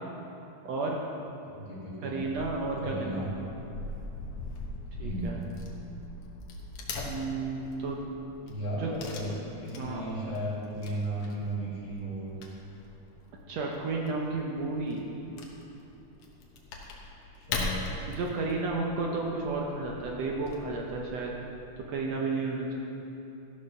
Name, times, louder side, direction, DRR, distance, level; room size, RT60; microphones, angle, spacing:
voice 1, 0.6-1.0 2.0-3.3 5.0-5.4 7.0-8.0 8.7-8.9 9.7-10.4 13.5-15.1 18.1-21.3 21.9-22.7, right 3 dB, 70° right, -1 dB, 1.8 m, -32 dB
voice 2, 1.6-2.3 2.8-3.4 5.0-5.5 8.5-12.4 17.3-17.9, right 1 dB, 45° left, -7 dB, 2.6 m, -35 dB
Wood / Tearing, 2.2-21.8, left 2 dB, 75° left, 2.5 m, -42 dB
13.5 x 6.5 x 5.8 m, 2.9 s
omnidirectional pair, 3.5 m